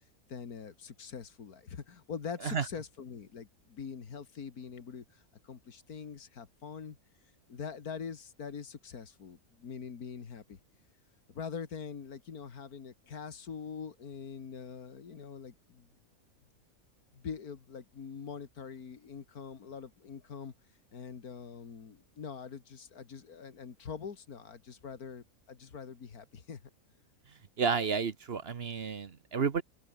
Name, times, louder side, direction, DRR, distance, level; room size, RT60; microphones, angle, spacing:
voice 1, 0.3-7.0 7.5-10.6 11.3-15.9 17.1-20.5 20.9-26.6, left 6 dB, 85° left, 2.3 m, -44 dB
voice 2, 27.6-29.6, right 6 dB, 45° right, 1.2 m, -31 dB
omnidirectional pair, 1.5 m